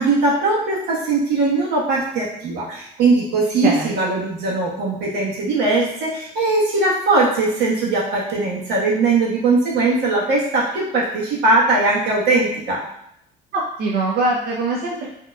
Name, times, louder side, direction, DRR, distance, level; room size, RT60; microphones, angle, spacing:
voice 1, 0.0-12.8, right 3 dB, 85° right, -5 dB, 1.3 m, -20 dB
voice 2, 3.6-3.9 13.5-15.1, right 2 dB, 65° right, -3 dB, 0.6 m, -22 dB
4.4 x 2.9 x 2.3 m, 0.76 s
cardioid pair, 110°, 17 cm